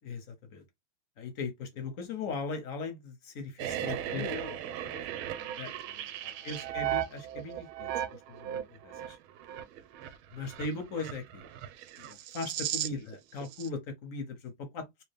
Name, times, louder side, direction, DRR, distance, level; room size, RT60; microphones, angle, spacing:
voice 1, 1.2-4.2 5.6-5.7 6.4-8.4 8.8-9.2 10.3-11.5 12.3-15.0, left 3 dB, 60° left, 0.9 m, -38 dB
sound 1, 3.6-13.2 13.4-13.7, right 12 dB, 90° right, 1.4 m, -36 dB
voice 2, 3.8-6.9 12.0-12.2 12.9-13.1, left 8 dB, 80° left, 0.7 m, -48 dB
3.3 x 2.9 x 3.3 m
omnidirectional pair, 2.2 m